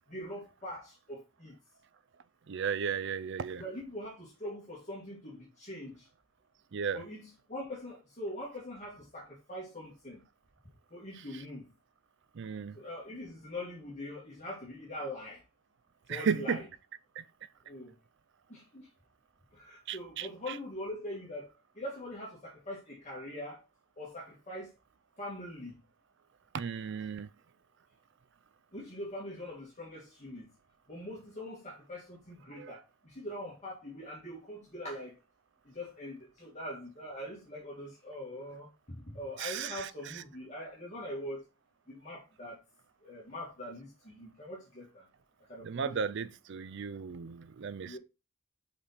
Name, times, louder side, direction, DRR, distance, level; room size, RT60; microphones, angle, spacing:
voice 1, 0.1-1.5 3.6-6.1 6.9-10.2 10.9-11.7 12.7-15.4 16.1-16.7 17.7-17.9 18.5-18.8 19.5-21.5 21.8-23.6 24.0-24.7 25.2-25.8 28.7-30.5 30.9-35.1 35.7-41.4 41.9-42.6 43.0-45.0 45.5-46.3 47.9-48.0, left 1 dB, 30° left, 2.0 m, -43 dB
voice 2, 2.5-3.6 6.7-7.0 12.4-12.8 16.1-16.6 17.2-17.3 19.9-20.3 26.5-27.3 32.5-32.7 39.4-39.9 40.1-40.2 45.6-48.0, right 6 dB, 55° right, 0.4 m, -34 dB
5.6 x 5.1 x 4.1 m
head